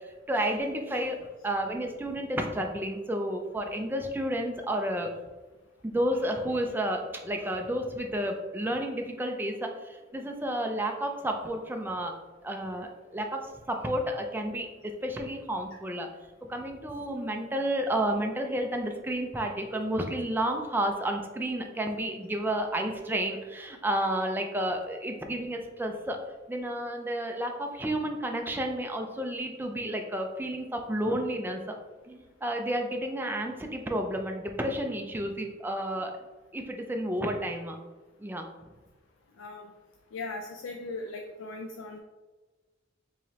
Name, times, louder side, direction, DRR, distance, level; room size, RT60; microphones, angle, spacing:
voice 1, 0.3-1.2 1.4-5.1 5.8-12.2 12.4-13.4 13.7-16.1 16.5-26.2 26.5-31.8 32.1-36.1 36.5-37.8 38.2-38.5, right 1 dB, 10° right, 3 dB, 0.4 m, -31 dB
voice 2, 39.4-39.7 40.1-42.0, left 3 dB, 70° left, 2 dB, 0.4 m, -38 dB
4.7 x 3.0 x 2.8 m, 1.2 s
head